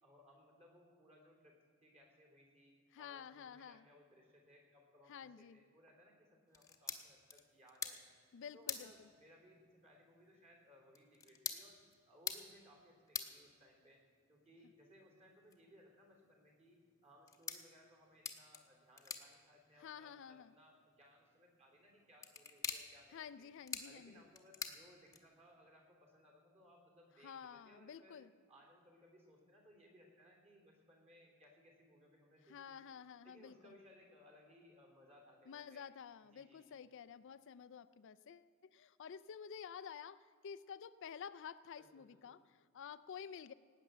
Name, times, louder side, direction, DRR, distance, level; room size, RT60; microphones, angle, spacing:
voice 1, 0.0-8.2 8.5-11.8 12.1-14.0 14.3-23.5 23.8-28.2 28.5-32.9 33.2-35.9 36.3-36.8 41.8-42.4, equal, 30° right, 1 dB, 3.3 m, -64 dB
voice 2, 2.9-3.8 5.1-5.6 8.3-8.9 19.8-20.5 23.1-24.2 27.2-28.3 32.5-33.7 35.5-43.5, left 7 dB, 55° left, 15 dB, 0.4 m, -51 dB
sound 1, 6.5-25.6, left 5 dB, 15° left, 1.0 m, -50 dB
18.5 x 9.0 x 6.8 m, 2.1 s
head